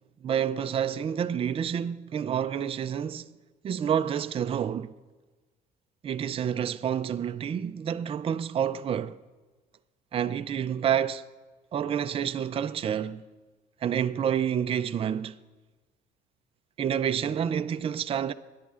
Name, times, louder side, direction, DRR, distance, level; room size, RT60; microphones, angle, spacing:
voice 1, 0.2-3.4 3.6-4.9 6.0-9.2 10.1-11.2 11.7-13.3 13.8-15.4 16.8-18.3, right 8 dB, 35° right, 0.4 m, -28 dB
21.0 x 10.5 x 2.5 m
cardioid pair, 110°, 17 cm